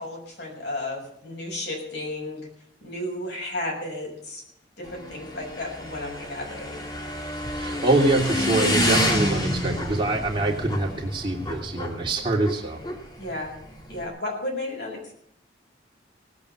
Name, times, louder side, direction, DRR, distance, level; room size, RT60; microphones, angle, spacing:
voice 1, 0.0-2.4 2.8-4.4 4.8-6.8 13.2-13.6 13.9-15.1, left 1 dB, 65° left, -1 dB, 7.0 m, -33 dB
Motorcycle / Engine, 4.8-14.1, equal, 20° left, 2.2 m, -29 dB
voice 2, 7.6-12.8, right 2 dB, 25° right, 0 dB, 2.9 m, -24 dB
18.0 x 8.6 x 6.9 m, 0.69 s
head